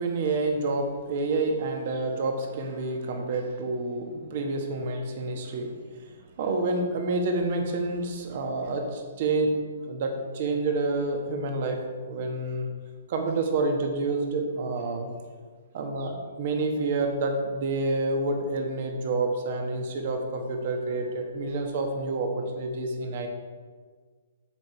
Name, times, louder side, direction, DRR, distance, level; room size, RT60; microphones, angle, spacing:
voice 1, 0.0-5.7 6.0-11.8 12.1-12.7 13.1-15.1 15.7-23.3, right 2 dB, 45° right, 3 dB, 1.3 m, -28 dB
9.0 x 6.8 x 4.4 m, 1.5 s
hypercardioid pair, 160°, 0 cm